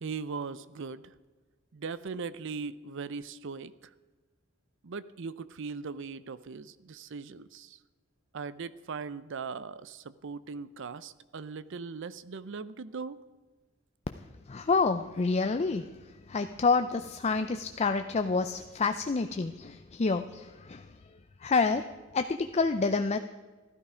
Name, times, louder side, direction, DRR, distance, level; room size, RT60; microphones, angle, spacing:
voice 1, 0.0-1.1 1.7-3.9 4.8-7.8 8.3-13.2, right 5 dB, 65° right, 16 dB, 0.6 m, -39 dB
voice 2, 14.5-15.9 16.3-20.9 21.4-21.8 22.1-23.2, left 4 dB, 30° left, 8 dB, 0.5 m, -28 dB
14.5 x 13.0 x 5.0 m, 1.3 s
head